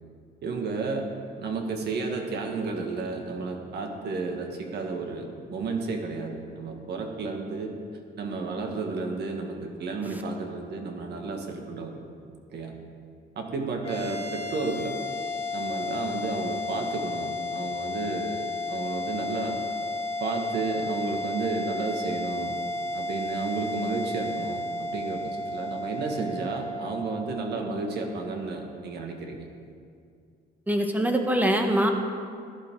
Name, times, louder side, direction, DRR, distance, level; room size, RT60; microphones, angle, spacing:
voice 1, 0.4-1.1 1.4-7.7 8.2-12.0 12.5-12.7 13.4-15.0 15.5-19.6 20.2-22.6 22.9-29.5, right 3 dB, 65° right, 3 dB, 1.9 m, -32 dB
sound 1, 13.8-28.4, left 2 dB, 30° left, 1.3 m, -33 dB
voice 2, 30.7-31.9, right 1 dB, 10° right, 4 dB, 1.2 m, -23 dB
17.0 x 11.5 x 3.8 m, 2.3 s
cardioid pair, 125°, 19 cm